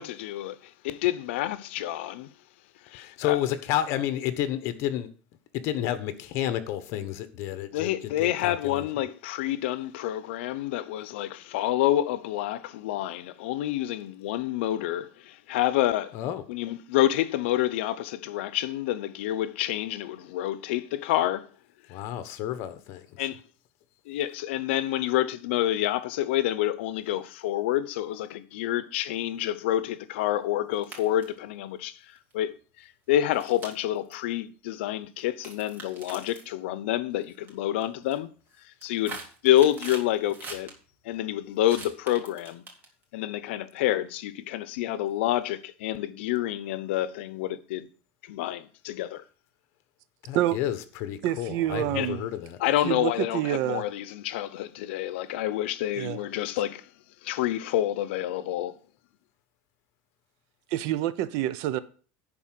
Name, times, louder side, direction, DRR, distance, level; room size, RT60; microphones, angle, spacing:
voice 1, 0.0-2.3 2.8-3.4 7.7-16.1 16.5-21.5 23.2-23.4 24.1-38.3 38.8-40.7 41.0-42.6 43.1-47.9 48.2-49.2 51.9-52.1 52.6-56.9 57.2-58.8, left 13 dB, 85° left, 0.7 m, -28 dB
voice 2, 2.9-5.1 5.5-9.0 16.1-16.4 21.9-23.3 50.2-52.6, left 12 dB, 55° left, 1.3 m, -31 dB
sound 1, 30.7-31.4 32.2-32.3 33.3-34.1 35.2-36.5 37.2-37.5 37.8-38.2 38.6-40.7 41.6-43.0, right 3 dB, 30° right, 2.9 m, -42 dB
voice 3, 51.2-52.3 52.8-53.8 55.9-56.2 60.7-61.8, right 13 dB, 60° right, 0.8 m, -27 dB
11.0 x 4.4 x 7.6 m
supercardioid pair, 145°, 6 cm